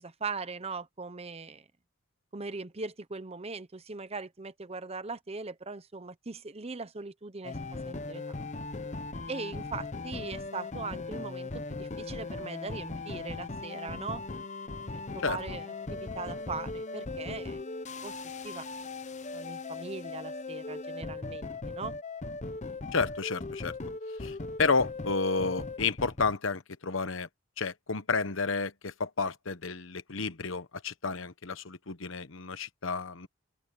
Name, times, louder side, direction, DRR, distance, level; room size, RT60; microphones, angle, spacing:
voice 1, 0.0-1.6 2.3-7.6 7.8-8.3 9.3-14.2 14.9-17.6 18.0-18.1 18.4-18.7 19.3-22.0, right 4 dB, 30° right, 0.9 m, -40 dB
sound 1, 7.4-26.4, left 3 dB, 35° left, 0.9 m, -39 dB
voice 2, 22.9-23.7 24.2-27.3 27.6-33.3, left 4 dB, 65° left, 1.1 m, -31 dB
open air
head